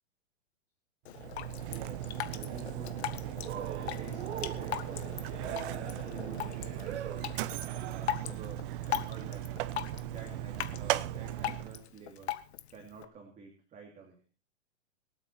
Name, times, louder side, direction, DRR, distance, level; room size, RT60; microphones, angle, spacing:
Drip, 1.1-13.1, left 11 dB, 65° left, 1.7 m, -40 dB
Mechanisms, 1.1-11.8, right 14 dB, 45° right, 1.0 m, -38 dB
voice 1, 1.6-3.0 3.4-7.3 7.8-8.6 8.9-9.7 10.1-12.4 12.7-14.2, right 5 dB, 20° right, 2 dB, 3.0 m, -49 dB
Cheering, 3.4-8.4, right 11 dB, 70° right, 1.2 m, -43 dB
25.5 x 8.8 x 4.3 m, 0.35 s
hypercardioid pair, 135°, 36 cm